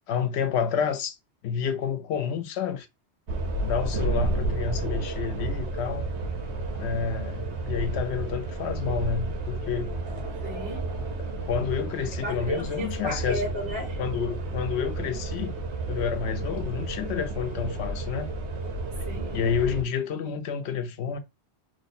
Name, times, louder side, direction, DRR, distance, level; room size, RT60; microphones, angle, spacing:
voice 1, 0.1-1.2 1.4-2.9 3.6-6.1 6.7-9.9 11.2-13.4 14.0-15.5 15.9-18.3 19.3-21.2, left 7 dB, 80° left, 0.9 m, -29 dB
sound 1, 3.3-19.8, right 2 dB, 85° right, 1.1 m, -31 dB
voice 2, 10.4-10.9 12.2-14.0 19.0-19.4, equal, 60° right, 1.6 m, -34 dB
3.1 x 2.1 x 4.1 m
omnidirectional pair, 1.1 m